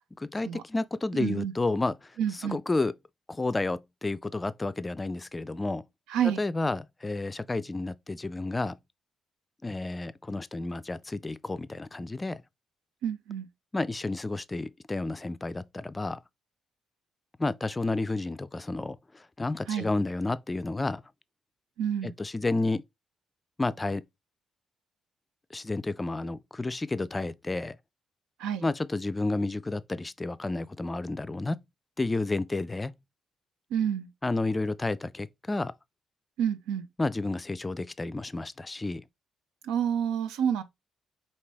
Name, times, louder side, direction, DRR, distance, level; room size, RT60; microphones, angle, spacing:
voice 1, 0.2-2.1 2.4-2.9 3.3-5.8 6.4-8.8 9.6-12.4 13.7-16.2 17.4-21.0 22.0-22.8 23.6-24.0 25.5-27.8 28.6-31.6 32.0-32.9 34.2-35.7 37.0-39.0, left 2 dB, 25° left, 0.4 m, -31 dB
voice 2, 1.1-1.5 2.2-2.6 6.1-6.4 13.0-13.5 19.7-19.9 21.8-22.1 28.4-28.7 33.7-34.1 36.4-36.9 39.6-40.6, right 8 dB, 75° right, 0.5 m, -28 dB
4.9 x 2.7 x 3.3 m
hypercardioid pair, 45°, 0 cm